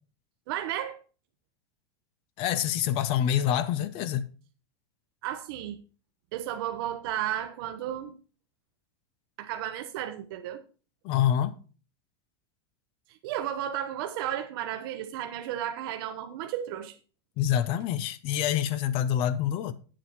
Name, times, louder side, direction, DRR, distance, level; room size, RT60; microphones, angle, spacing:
voice 1, 0.5-1.0 5.2-5.8 6.3-8.1 9.4-10.6 13.1-17.0, right 11 dB, 60° right, 1.0 m, -33 dB
voice 2, 2.4-4.3 11.0-11.6 17.4-19.7, left 10 dB, 45° left, 0.8 m, -26 dB
8.5 x 7.6 x 4.5 m
supercardioid pair, 150°, 13 cm